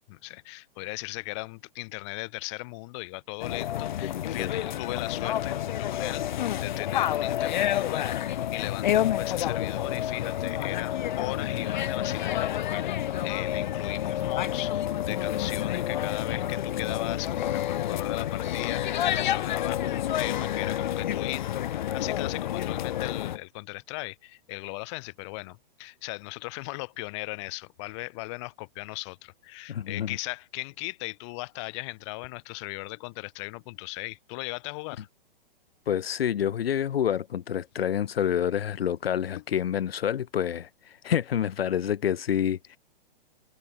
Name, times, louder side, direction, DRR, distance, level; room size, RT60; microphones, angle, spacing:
voice 1, 0.1-6.2 6.6-35.1 39.4-39.5, left 27 dB, 30° left, 5.5 m, -38 dB
sound 1, 3.4-23.4, left 11 dB, 50° left, 2.2 m, -29 dB
voice 2, 4.0-4.5 29.7-30.2 35.9-42.8, left 9 dB, 80° left, 1.3 m, -28 dB
hypercardioid pair, 165°, 29 cm